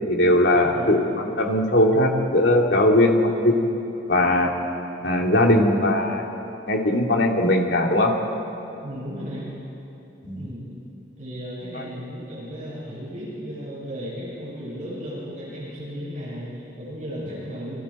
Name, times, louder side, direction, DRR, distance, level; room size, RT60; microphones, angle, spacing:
voice 1, 0.1-3.6 4.1-4.5 5.0-6.3 6.7-8.1 10.2-10.4 11.7-11.8, left 1 dB, 65° left, 0 dB, 2.7 m, -19 dB
voice 2, 8.8-9.5 10.3-10.6 11.2-17.8, equal, 40° right, -7 dB, 7.2 m, -35 dB
27.5 x 25.5 x 4.4 m, 2.9 s
head